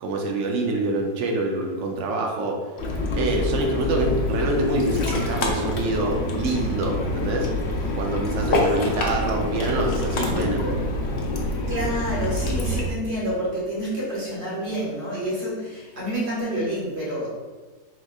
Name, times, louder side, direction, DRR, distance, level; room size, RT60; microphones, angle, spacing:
voice 1, 0.0-2.6 3.1-7.5 7.9-10.6, right 2 dB, 85° right, 1 dB, 0.6 m, -26 dB
Ocean, 2.8-12.9, left 1 dB, 85° left, 0.6 m, -26 dB
voice 2, 11.7-17.3, equal, 35° right, -7 dB, 1.7 m, -28 dB
4.8 x 3.9 x 2.3 m, 1.3 s
omnidirectional pair, 2.0 m